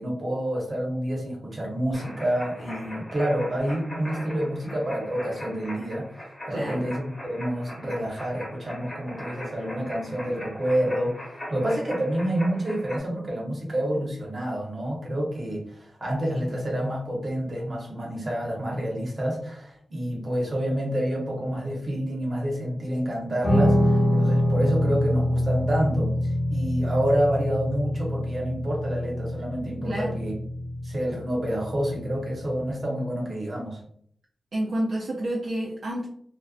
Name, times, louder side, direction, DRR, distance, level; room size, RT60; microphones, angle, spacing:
voice 1, 0.0-26.1 26.5-30.3 30.8-33.8, equal, 35° right, -2 dB, 0.8 m, -28 dB
sound 1, 1.9-13.0, equal, 20° left, 0.9 m, -40 dB
voice 2, 6.5-6.9 29.8-30.2 34.5-36.1, right 1 dB, 60° right, -3 dB, 0.4 m, -29 dB
Guitar, 23.4-32.7, left 1 dB, 40° left, 0.6 m, -26 dB
2.4 x 2.2 x 2.3 m, 0.63 s
wide cardioid pair, 160°, 0 cm